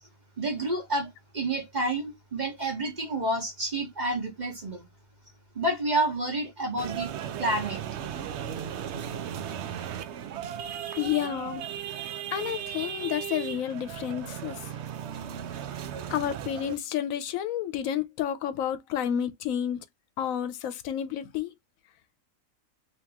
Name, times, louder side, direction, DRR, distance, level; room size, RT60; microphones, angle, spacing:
voice 1, 0.4-4.9 5.5-7.1 7.4-7.8, right 1 dB, 35° right, 1.3 m, -29 dB
sound 1, 6.8-16.8, right 9 dB, 65° right, 0.8 m, -36 dB
voice 2, 10.9-11.6 12.3-14.6 16.1-19.8 20.2-21.5, left 10 dB, 80° left, 1.0 m, -30 dB
2.9 x 2.9 x 3.4 m
omnidirectional pair, 1.4 m